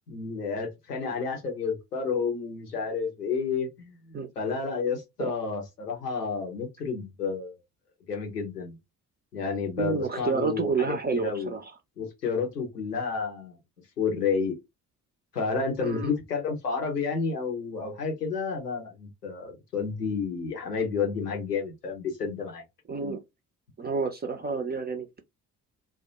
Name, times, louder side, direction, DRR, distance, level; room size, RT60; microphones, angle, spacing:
voice 1, 0.1-7.6 8.1-8.8 9.3-11.5 12.0-13.6 14.0-14.6 15.3-22.6, left 5 dB, 90° left, 0.7 m, -30 dB
voice 2, 9.8-11.7 15.8-16.1 22.9-23.2 23.8-25.2, right 5 dB, 20° right, 0.5 m, -29 dB
2.2 x 2.1 x 2.7 m
figure-of-eight pair, 40°, 46 cm